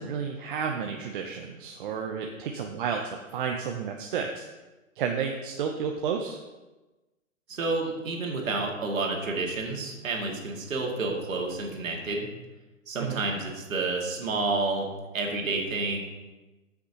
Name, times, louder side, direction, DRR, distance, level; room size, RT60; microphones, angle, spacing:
voice 1, 0.0-4.5 5.0-6.4 13.0-13.2, right 6 dB, 40° right, 2 dB, 0.7 m, -31 dB
voice 2, 7.5-12.3 12.9-16.0, right 3 dB, 75° right, 0 dB, 2.1 m, -30 dB
13.0 x 6.0 x 2.9 m, 1.1 s
hypercardioid pair, 140°, 40 cm